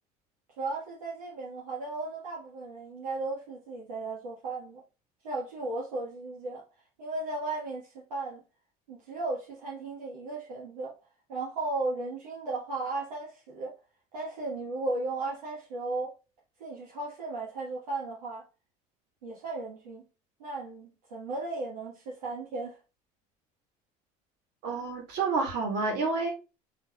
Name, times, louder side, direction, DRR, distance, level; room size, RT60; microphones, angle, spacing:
voice 1, 0.6-4.8 5.2-6.6 7.0-8.4 8.9-10.9 11.3-13.8 14.1-16.2 16.6-18.4 19.2-20.0 20.4-22.8, right 2 dB, 90° right, 1.5 m, -35 dB
voice 2, 24.6-26.3, right 4 dB, 65° right, 2.2 m, -29 dB
4.2 x 3.4 x 3.7 m
hypercardioid pair, 75°, 19 cm